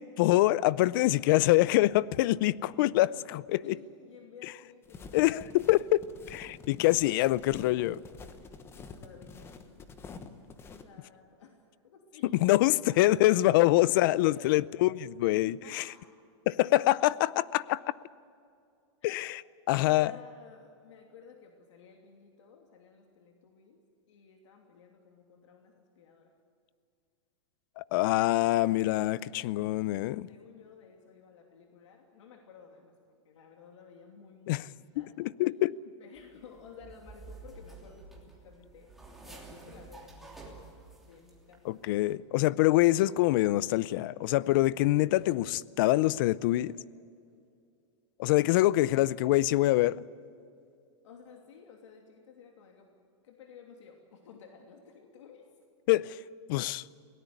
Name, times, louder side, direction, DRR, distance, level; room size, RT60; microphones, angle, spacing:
voice 1, 0.2-3.7 5.1-6.0 6.3-8.0 12.4-15.8 16.5-17.8 19.0-19.4 19.7-20.1 27.8-30.3 34.5-34.6 35.0-35.7 41.6-46.7 48.2-50.0 55.9-56.2 56.5-56.8, left 17 dB, 45° left, 0.5 m, -25 dB
voice 2, 3.5-5.8 8.8-9.9 10.7-11.6 11.8-12.3 12.7-13.1 14.4-14.5 15.6-16.1 19.0-19.2 19.7-23.8 24.1-26.3 30.2-32.9 33.2-35.2 35.8-40.6 41.0-41.8 48.6-49.5 51.0-52.9 53.2-55.5, left 6 dB, 75° left, 2.9 m, -54 dB
sound 1, 4.8-10.8, left 4 dB, 15° left, 1.2 m, -47 dB
sound 2, 36.1-41.6 41.8-42.1, right 3 dB, ahead, 3.0 m, -50 dB
23.0 x 18.0 x 9.6 m
supercardioid pair, 160°, 16 cm